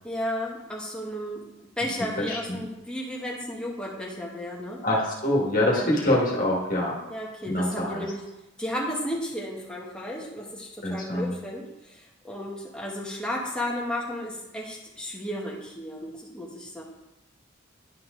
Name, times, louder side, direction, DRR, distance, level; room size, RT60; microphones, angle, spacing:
voice 1, 0.0-1.4 1.8-4.8 5.6-5.9 7.1-8.2 8.6-16.8, equal, 5° left, -3 dB, 1.2 m, -33 dB
voice 2, 2.2-2.6 4.8-7.0 7.4-8.0 10.8-11.3, left 1 dB, 40° left, -3 dB, 1.8 m, -25 dB
10.5 x 4.4 x 3.8 m, 0.97 s
head